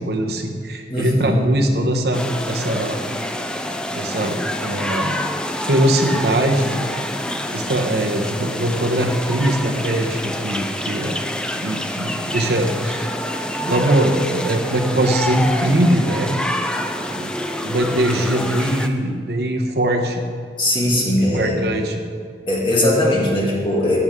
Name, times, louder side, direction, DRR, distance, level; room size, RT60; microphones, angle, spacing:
voice 1, 0.0-3.0 3.9-5.2 5.5-6.7 7.5-11.2 11.6-13.1 13.6-16.3 17.2-17.3 17.6-20.2 21.2-22.0, right 1 dB, 65° right, 3 dB, 1.1 m, -21 dB
voice 2, 0.9-1.4 20.6-21.6 22.5-24.0, left 1 dB, 30° left, -5 dB, 2.6 m, -19 dB
sound 1, 2.1-18.9, left 1 dB, 5° left, 0.5 m, -27 dB
15.5 x 9.2 x 3.7 m, 2.1 s
head